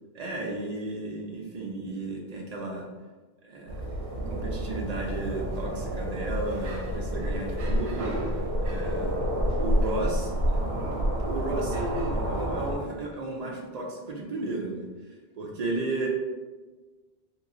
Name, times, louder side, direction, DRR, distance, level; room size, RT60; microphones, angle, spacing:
voice 1, 0.1-2.9 3.4-3.8 4.3-8.2 8.6-9.2 9.6-10.3 11.2-16.1, right 2 dB, 55° right, -1 dB, 0.5 m, -34 dB
sound 1, 3.7-12.8, equal, 80° right, 0.8 m, -29 dB
3.0 x 2.9 x 2.5 m, 1.3 s
omnidirectional pair, 1.1 m